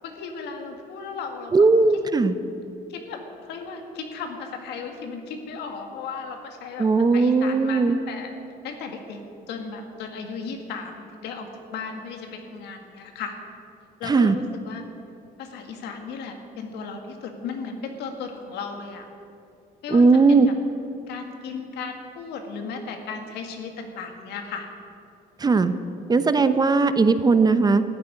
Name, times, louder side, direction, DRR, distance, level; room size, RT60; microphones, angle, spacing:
voice 1, 0.0-1.7 2.9-6.9 7.1-8.3 8.6-9.2 9.5-13.3 14.0-14.8 15.4-19.1 19.8-20.5 21.1-24.7, left 5 dB, 80° left, 4 dB, 2.0 m, -35 dB
voice 2, 1.5-2.3 6.8-8.0 14.1-14.4 19.9-20.5 25.4-25.7 26.1-27.8, right 4 dB, 25° right, 11 dB, 0.7 m, -18 dB
14.0 x 8.7 x 9.8 m, 2.5 s
cardioid pair, 110°, 17 cm